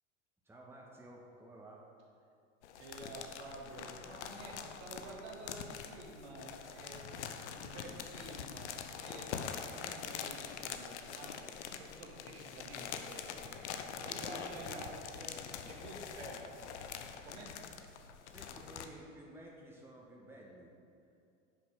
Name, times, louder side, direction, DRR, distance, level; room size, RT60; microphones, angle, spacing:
voice 1, 0.4-1.8 13.8-16.1 18.1-20.7, right 1 dB, 5° right, -3 dB, 1.7 m, -54 dB
sound 1, 2.6-18.9, left 7 dB, 60° left, 0.9 m, -44 dB
voice 2, 2.8-9.3 9.6-11.5 11.8-13.6 14.0-15.3 15.7-16.7 17.2-17.5, right 2 dB, 55° right, -2 dB, 2.3 m, -50 dB
9.8 x 6.6 x 6.5 m, 2.5 s
figure-of-eight pair, 80°, 39 cm